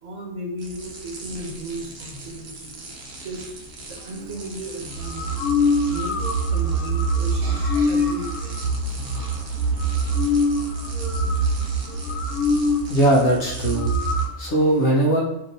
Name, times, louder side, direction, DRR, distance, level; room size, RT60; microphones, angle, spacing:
voice 1, 0.0-2.9 3.2-3.5 3.9-9.2, right 1 dB, 75° right, 0 dB, 1.3 m, -35 dB
sound 1, 0.6-14.3, right 1 dB, 60° right, 0.9 m, -39 dB
sound 2, 5.0-12.9 13.2-13.3 13.5-14.3, equal, 85° left, 1.2 m, -23 dB
voice 2, 12.9-15.2, right 1 dB, 65° left, -2 dB, 0.9 m, -20 dB
2.9 x 2.6 x 3.9 m, 0.91 s
omnidirectional pair, 1.3 m